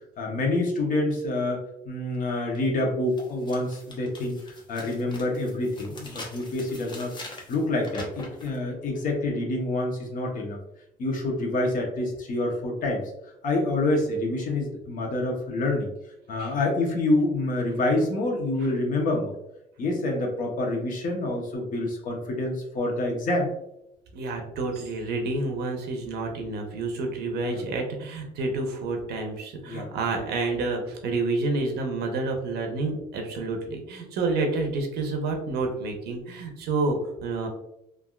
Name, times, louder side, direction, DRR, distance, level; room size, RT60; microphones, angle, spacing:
voice 1, 0.2-7.2 7.5-10.6 11.0-13.0 13.4-15.9 16.3-19.3 19.8-23.5 27.5-27.6 29.7-29.9 30.2-30.3, left 2 dB, 55° left, 1 dB, 0.9 m, -27 dB
sound 1, 2.5-2.6 3.1-8.6, left 2 dB, 25° left, 0.7 m, -43 dB
voice 2, 24.1-37.5, right 3 dB, 75° right, 3 dB, 0.8 m, -29 dB
3.4 x 2.5 x 2.3 m, 0.82 s
cardioid pair, 110°, 17 cm